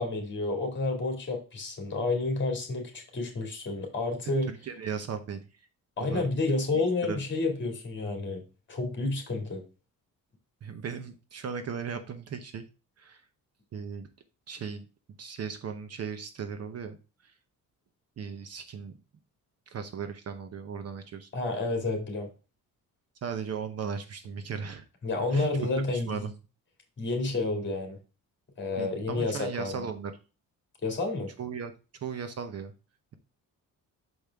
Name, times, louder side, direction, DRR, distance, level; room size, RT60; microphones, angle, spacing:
voice 1, 0.0-4.5 6.0-8.4 8.7-9.6 21.3-22.3 25.0-26.2 27.0-28.0 28.6-29.8 30.8-31.3, left 3 dB, 30° left, 3 dB, 2.4 m, -30 dB
voice 2, 4.5-5.7 6.0-6.3 7.0-7.2 10.6-12.7 13.0-13.2 13.7-14.1 14.5-14.8 15.2-17.0 17.2-17.3 18.2-18.9 19.7-21.3 23.2-24.8 25.3-26.3 28.8-30.1 31.4-31.7 32.0-32.7, right 6 dB, 45° right, 9 dB, 0.8 m, -37 dB
6.2 x 5.2 x 3.5 m, 0.32 s
cardioid pair, 165°, 34 cm